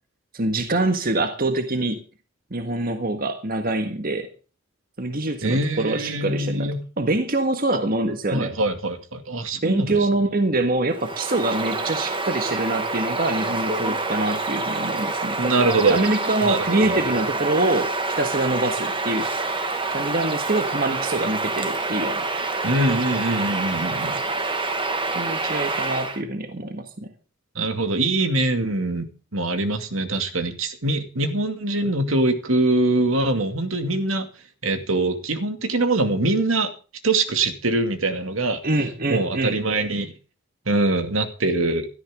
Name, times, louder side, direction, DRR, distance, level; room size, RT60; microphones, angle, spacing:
voice 1, 0.3-2.0 2.5-4.3 5.0-8.6 9.5-15.4 15.9-19.3 19.9-22.3 25.1-27.1 38.6-39.6, right 2 dB, 45° right, 1.7 m, -25 dB
voice 2, 5.4-6.8 7.7-7.8 8.3-10.1 15.4-16.0 16.4-17.1 22.6-24.2 27.6-29.1 29.3-34.3 34.6-36.7 37.0-38.6 39.1-40.1 40.7-41.9, right 2 dB, 75° right, 2.4 m, -23 dB
Bird vocalization bird call bird song, 10.9-26.2, right 3 dB, 25° right, 1.7 m, -27 dB
17.5 x 13.5 x 3.7 m
head